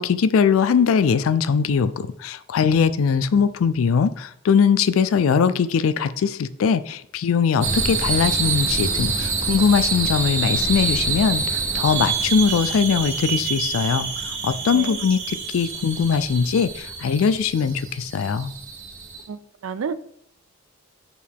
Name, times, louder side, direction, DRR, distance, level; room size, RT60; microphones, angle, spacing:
voice 1, 0.0-18.5, left 6 dB, 80° left, 0.4 m, -21 dB
sound 1, 7.6-19.2, right 4 dB, 60° right, 1.6 m, -26 dB
voice 2, 19.3-19.9, right 6 dB, 80° right, 0.4 m, -30 dB
6.7 x 4.6 x 3.5 m
head